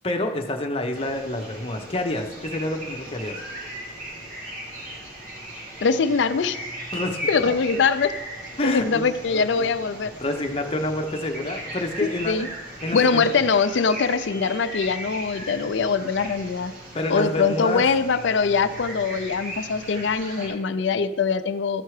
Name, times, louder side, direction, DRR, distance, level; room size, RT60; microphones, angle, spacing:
voice 1, 0.0-3.4 6.9-7.2 7.5-7.6 8.6-9.7 10.1-12.5 12.8-13.3 16.9-17.9, left 1 dB, 30° left, 3 dB, 0.8 m, -28 dB
sound 1, 0.9-20.5, right 1 dB, 45° right, 2.6 m, -38 dB
voice 2, 5.8-6.6 7.3-8.1 8.6-10.1 12.3-12.5 12.9-16.7 17.1-21.8, left 5 dB, 65° left, 13 dB, 0.4 m, -22 dB
13.0 x 4.5 x 4.9 m, 1.2 s
head